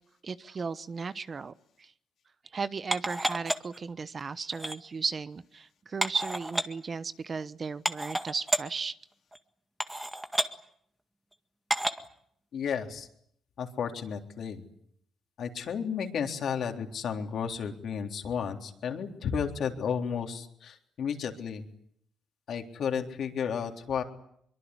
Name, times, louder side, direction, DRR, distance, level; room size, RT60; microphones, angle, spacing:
voice 1, 0.2-1.9 2.5-9.0, right 5 dB, 40° right, 15 dB, 1.0 m, -35 dB
sound 1, 2.9-3.8 4.5-4.8 6.0-6.6 7.4-7.5 7.8-8.6 9.3-9.4 9.8-10.5 11.7-12.1 12.7-12.8, right 1 dB, 10° right, 1.9 m, -30 dB
voice 2, 12.5-13.1 13.6-14.6 15.4-21.7 22.5-24.0, left 7 dB, 65° left, 4 dB, 3.7 m, -33 dB
23.5 x 23.0 x 9.8 m, 0.69 s
cardioid pair, 90°, 0 cm